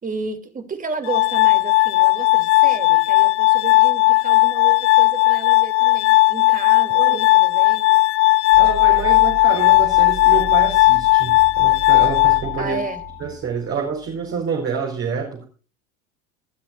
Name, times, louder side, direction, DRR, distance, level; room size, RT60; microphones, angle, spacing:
voice 1, 0.0-8.0 12.6-13.0, right 4 dB, 25° right, 3.0 m, -32 dB
Glass, 1.1-13.1, left 21 dB, 75° left, 0.9 m, -16 dB
sound 1, 8.5-14.5, right 2 dB, 15° left, 3.8 m, -35 dB
voice 2, 8.6-12.8 13.2-15.4, right 6 dB, 40° right, 5.0 m, -27 dB
20.5 x 13.0 x 2.6 m
hypercardioid pair, 85°, 34 cm